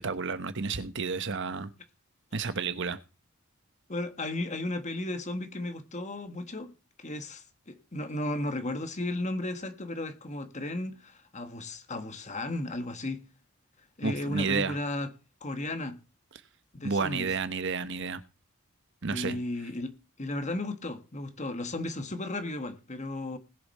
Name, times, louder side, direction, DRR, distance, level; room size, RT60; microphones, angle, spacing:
voice 1, 0.0-1.7 2.3-3.0 14.0-14.8 16.8-18.2 19.0-19.4, right 4 dB, 60° right, 1.0 m, -31 dB
voice 2, 3.9-6.7 7.0-13.2 14.0-15.1 15.4-16.0 16.7-17.3 19.1-19.9 20.2-23.4, left 1 dB, 35° left, 1.5 m, -34 dB
20.0 x 7.0 x 4.3 m
head